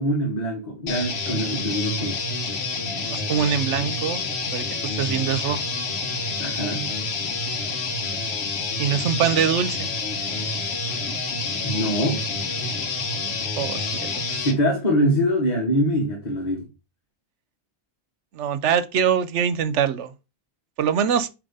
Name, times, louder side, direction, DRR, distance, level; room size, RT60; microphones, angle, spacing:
voice 1, 0.0-2.2 6.4-6.9 11.6-12.2 14.3-16.6, equal, 40° left, 1.6 m, -24 dB
sound 1, 0.9-14.6, left 3 dB, 65° left, 1.4 m, -28 dB
voice 2, 3.1-4.2 4.5-5.6 8.8-9.9 13.6-14.4 18.3-20.1 20.8-21.3, right 8 dB, 85° right, 1.1 m, -23 dB
8.5 x 3.3 x 5.4 m
omnidirectional pair, 1.2 m